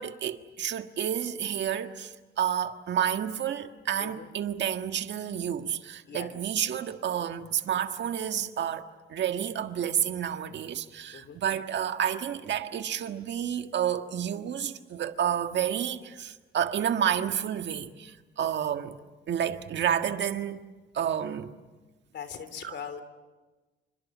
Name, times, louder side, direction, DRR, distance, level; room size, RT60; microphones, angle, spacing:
voice 1, 0.0-19.0 19.3-20.6 20.9-21.5 22.6-22.8, right 9 dB, 65° right, 1.6 m, -30 dB
voice 2, 22.1-23.0, left 7 dB, 60° left, 3.3 m, -40 dB
28.0 x 26.0 x 7.4 m
cardioid pair, 90°, 20 cm